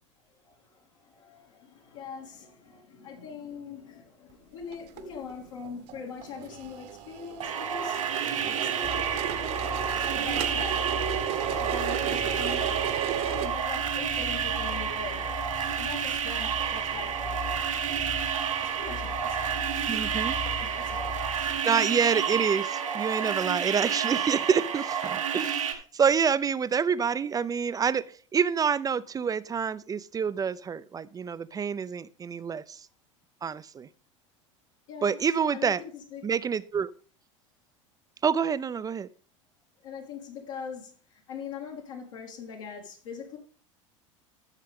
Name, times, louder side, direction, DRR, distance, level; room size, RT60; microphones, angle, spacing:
voice 1, 0.2-8.0 8.5-10.9 11.2-12.8 13.3-15.3 15.6-17.5 18.6-19.8 20.6-21.5 34.9-36.2 39.8-43.4, left 5 dB, 75° left, 2.5 m, -42 dB
sound 1, 4.7-5.0 5.3-5.4 5.6-13.5, right 10 dB, 60° right, 1.1 m, -34 dB
sound 2, 7.4-25.7, right 8 dB, 90° right, 1.5 m, -30 dB
sound 3, 8.8-21.6, left 6 dB, 15° left, 1.0 m, -40 dB
voice 2, 19.9-20.4 21.6-32.9 33.4-33.9 35.0-35.8 36.2-36.9 38.2-39.1, right 6 dB, 20° right, 0.4 m, -27 dB
12.5 x 6.5 x 3.6 m
hypercardioid pair, 85°, 16 cm